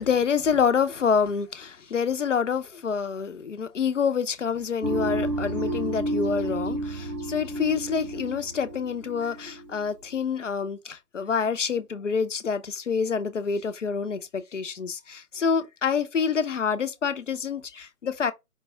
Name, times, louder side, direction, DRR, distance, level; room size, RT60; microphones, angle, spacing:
voice 1, 0.0-18.3, left 6 dB, 50° left, 0.6 m, -27 dB
sound 1, 4.8-9.9, right 1 dB, 80° right, 1.1 m, -31 dB
5.1 x 2.2 x 4.3 m
figure-of-eight pair, 145°, 47 cm